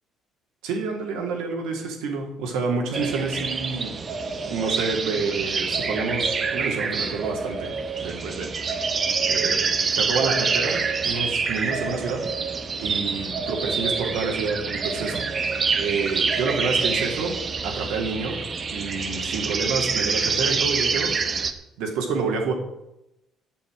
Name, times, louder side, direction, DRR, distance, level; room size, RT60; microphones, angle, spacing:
voice 1, 0.6-3.9 4.5-7.7 8.0-8.8 9.2-12.3 12.8-15.2 15.8-18.4 18.7-21.1 21.8-22.5, right 4 dB, 90° right, 2 dB, 2.9 m, -28 dB
sound 1, 2.9-21.5, right 5 dB, 40° right, 1.2 m, -26 dB
8.9 x 7.3 x 8.9 m, 0.88 s
cardioid pair, 100°, 0 cm